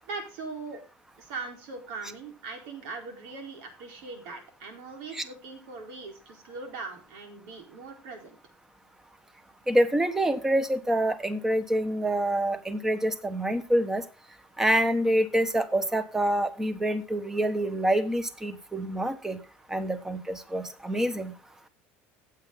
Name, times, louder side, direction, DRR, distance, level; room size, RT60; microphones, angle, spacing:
voice 1, 0.0-0.8 1.2-8.4, right 4 dB, 80° right, 3 dB, 4.5 m, -40 dB
voice 2, 9.7-14.0 14.6-19.4 19.7-21.3, right 1 dB, 10° right, 11 dB, 1.2 m, -26 dB
15.5 x 8.3 x 3.9 m, 0.33 s
cardioid pair, 150°, 5 cm